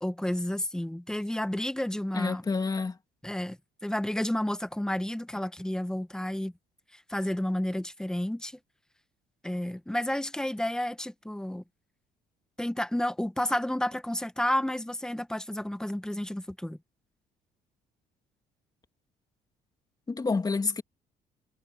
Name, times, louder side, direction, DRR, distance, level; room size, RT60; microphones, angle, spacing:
voice 1, 0.0-2.4 3.2-6.5 6.9-8.6 9.4-11.6 12.6-16.8, left 1 dB, 5° left, 0.9 m, -31 dB
voice 2, 2.1-3.0 20.1-20.8, left 4 dB, 25° left, 2.7 m, -28 dB
cardioid pair, 110°, 17 cm